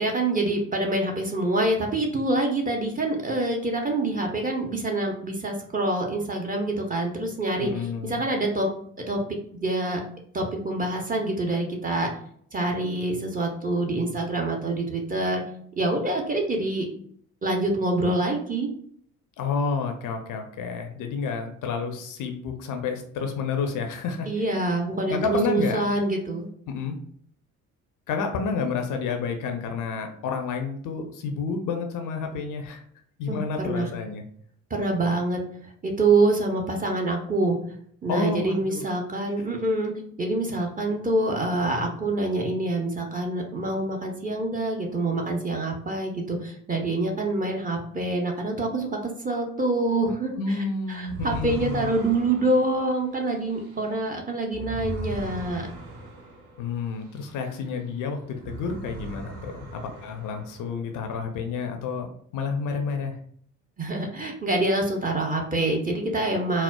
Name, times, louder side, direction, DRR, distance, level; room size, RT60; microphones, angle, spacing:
voice 1, 0.0-7.7 8.1-8.7 9.1-9.2 9.5-10.0 10.3-12.1 12.5-15.4 15.8-16.9 17.4-18.7 24.3-26.5 33.3-33.9 34.7-35.4 35.8-37.6 38.0-39.9 40.2-48.9 49.2-50.6 50.9-55.6 63.8-66.6, right 2 dB, 20° right, 1 dB, 0.7 m, -26 dB
voice 2, 7.6-8.3 19.4-24.3 25.1-25.9 26.7-27.0 28.1-32.8 33.2-34.2 38.1-38.8 39.4-39.5 50.4-51.9 56.6-62.1 62.3-63.2, left 5 dB, 50° left, 5 dB, 0.5 m, -30 dB
sound 1, 51.0-57.9 58.3-61.0, right 2 dB, 60° right, 0.9 m, -39 dB
4.2 x 2.0 x 2.2 m, 0.63 s
figure-of-eight pair, 50°, 40 cm